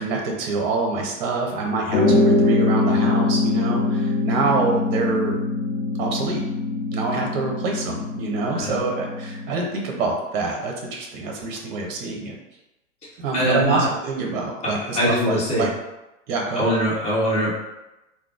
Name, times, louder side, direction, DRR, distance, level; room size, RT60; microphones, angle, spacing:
voice 1, 0.0-5.3 6.0-6.4 6.9-12.3 13.2-15.7 16.3-16.6, right 3 dB, 50° right, 0 dB, 0.9 m, -26 dB
sound 1, 1.9-9.6, left 3 dB, 65° left, 0.7 m, -23 dB
voice 2, 13.3-13.9 14.6-15.7 16.5-17.5, equal, 15° left, -7 dB, 1.2 m, -22 dB
3.3 x 2.2 x 2.4 m, 0.95 s
hypercardioid pair, 100°, 39 cm